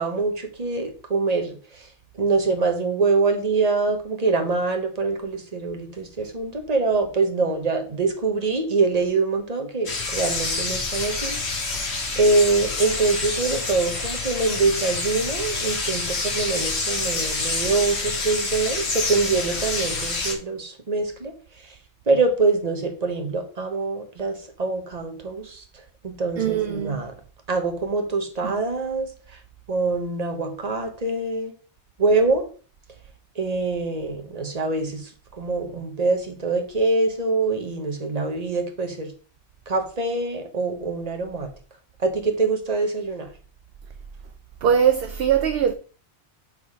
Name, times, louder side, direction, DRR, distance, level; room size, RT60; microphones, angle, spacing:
voice 1, 0.0-1.9 2.2-11.4 12.1-21.7 22.1-25.6 26.0-27.1 27.5-29.4 29.7-31.5 32.0-32.5 33.3-35.1 35.4-39.1 39.7-41.5 42.0-43.3, right 3 dB, 35° right, 1.3 m, -24 dB
sound 1, 9.9-20.3, left 3 dB, 60° left, 1.7 m, -27 dB
voice 2, 26.4-27.1 28.4-28.6 44.6-45.7, right 8 dB, 65° right, 0.7 m, -21 dB
6.6 x 3.9 x 4.9 m
omnidirectional pair, 1.2 m